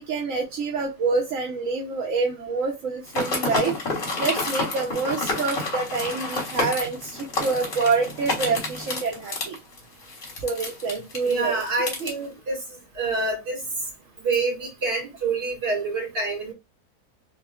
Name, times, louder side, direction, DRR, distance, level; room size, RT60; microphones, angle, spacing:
voice 1, 0.0-3.8 4.2-9.6 10.4-11.6, right 4 dB, 60° right, 1.1 m, -27 dB
sound 1, 3.1-12.1, left 2 dB, 55° left, 1.8 m, -29 dB
voice 2, 11.2-12.6 12.9-13.6 14.2-16.5, right 3 dB, 45° right, 2.6 m, -26 dB
3.6 x 3.6 x 2.3 m
omnidirectional pair, 1.7 m